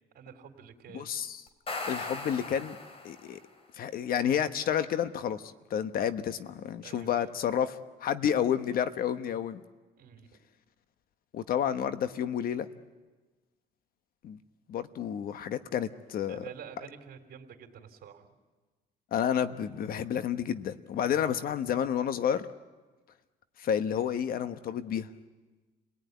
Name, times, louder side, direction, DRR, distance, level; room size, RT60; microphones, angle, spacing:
voice 1, 0.1-1.1 6.8-7.3 10.0-10.4 16.3-18.3 21.1-21.4, right 8 dB, 65° right, 4 dB, 3.5 m, -48 dB
voice 2, 0.9-1.4 1.9-2.8 3.0-3.4 3.8-5.4 5.7-9.6 11.3-12.7 14.2-14.4 14.7-16.5 19.1-22.5 23.6-25.1, left 9 dB, 60° left, 11 dB, 1.2 m, -30 dB
sound 1, 1.5-3.4, left 3 dB, 35° left, 2.9 m, -38 dB
30.0 x 18.5 x 9.5 m, 1.3 s
cardioid pair, 110°, 17 cm